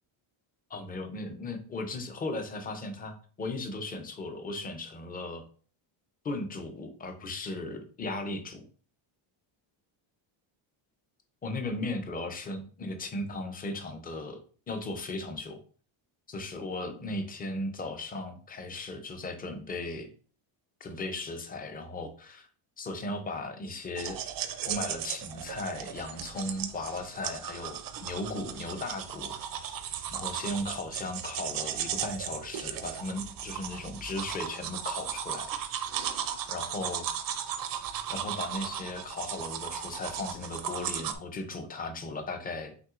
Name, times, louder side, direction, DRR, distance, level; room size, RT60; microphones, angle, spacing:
voice 1, 0.7-5.4 6.2-8.6 11.4-14.4 14.7-15.6 16.3-20.1 20.8-22.5 22.8-24.2 24.7-29.3 30.1-35.5 36.5-37.1 38.1-42.7, left 2 dB, 20° left, 6 dB, 0.5 m, -36 dB
sound 1, 24.0-41.1, right 9 dB, 45° right, 0.4 m, -36 dB
5.8 x 3.1 x 2.4 m, 0.41 s
cardioid pair, 150°, 50 cm